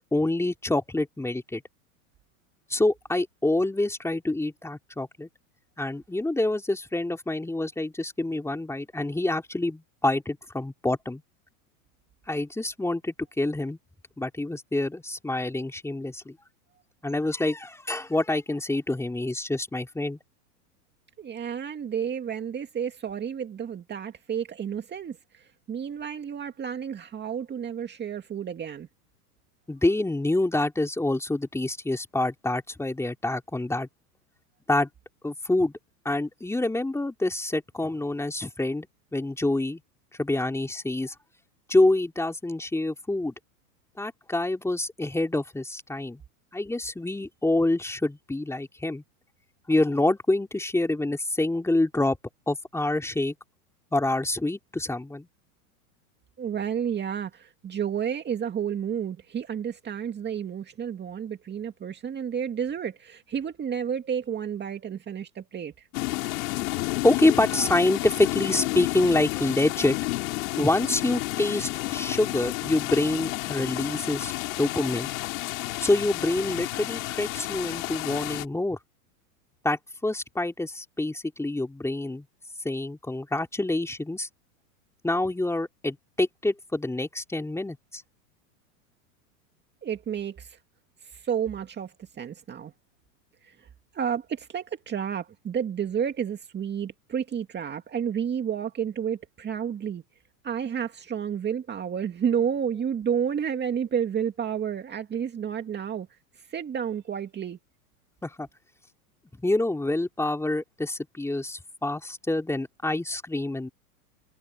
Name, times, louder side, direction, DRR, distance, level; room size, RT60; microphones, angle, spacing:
voice 1, 0.0-1.6 2.7-5.3 5.8-11.2 12.3-13.8 14.2-16.4 17.0-20.2 29.7-33.9 34.7-34.9 35.2-35.7 36.0-38.9 39.1-39.8 40.2-41.1 41.7-43.3 44.0-46.2 46.5-49.0 49.7-52.2 52.5-53.3 53.9-55.3 67.0-70.0 70.5-74.3 74.6-75.1 75.8-78.8 79.6-82.2 82.6-84.3 85.0-88.0 108.2-108.5 109.3-113.7, left 2 dB, 5° left, 3.2 m, -26 dB
voice 2, 21.2-28.9 56.4-65.9 89.8-90.6 91.0-92.7 93.4-93.7 93.9-100.0 100.4-106.1 106.5-107.6, right 8 dB, 20° right, 2.3 m, -31 dB
sound 1, 65.9-78.4, left 21 dB, 65° left, 6.3 m, -31 dB
hypercardioid pair, 115°, 45 cm